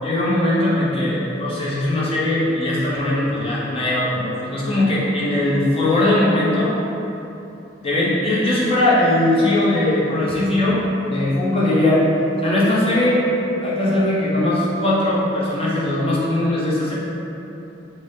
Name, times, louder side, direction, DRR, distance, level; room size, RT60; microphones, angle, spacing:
voice 1, 0.0-6.8 7.8-12.0 12.4-13.2 13.6-16.9, left 1 dB, 30° left, -7 dB, 0.7 m, -20 dB
3.9 x 2.0 x 3.5 m, 2.9 s
head